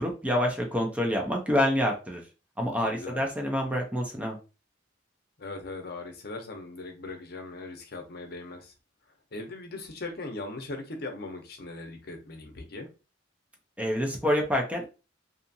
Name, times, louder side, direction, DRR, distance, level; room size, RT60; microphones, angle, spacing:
voice 1, 0.0-2.2 2.6-4.4 13.8-14.9, equal, 5° right, 0.5 m, -27 dB
voice 2, 2.8-3.3 5.4-8.7 9.3-12.9, left 2 dB, 55° left, 0.7 m, -39 dB
2.7 x 2.4 x 2.6 m
head